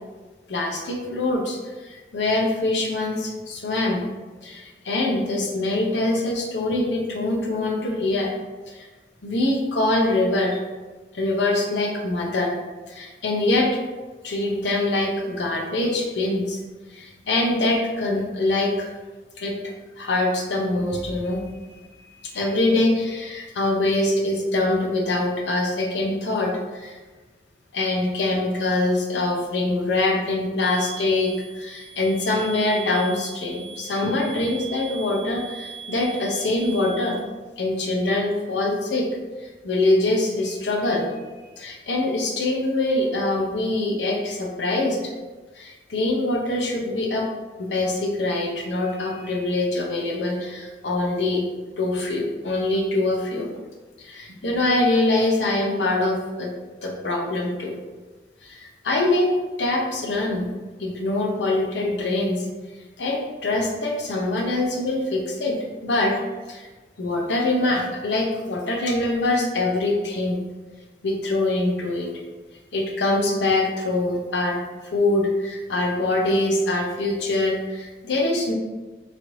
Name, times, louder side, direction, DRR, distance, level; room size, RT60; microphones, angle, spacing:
voice 1, 0.5-4.0 4.4-8.3 8.7-8.9 9.2-10.6 11.1-12.5 12.9-13.8 14.2-16.6 16.9-18.9 19.4-27.0 27.7-37.2 37.6-39.1 39.4-45.0 45.5-47.3 47.6-51.4 51.8-53.5 54.0-56.5 56.8-57.7 58.4-59.3 59.6-60.5 60.8-62.5 63.0-65.6 65.8-66.1 66.5-66.7 67.0-70.4 71.0-72.1 72.7-74.6 74.9-78.5, left 2 dB, 85° left, 0 dB, 0.6 m, -24 dB
sound 1, 30.6-37.2, right 6 dB, ahead, 0.5 m, -39 dB
3.1 x 2.6 x 2.9 m, 1.3 s
head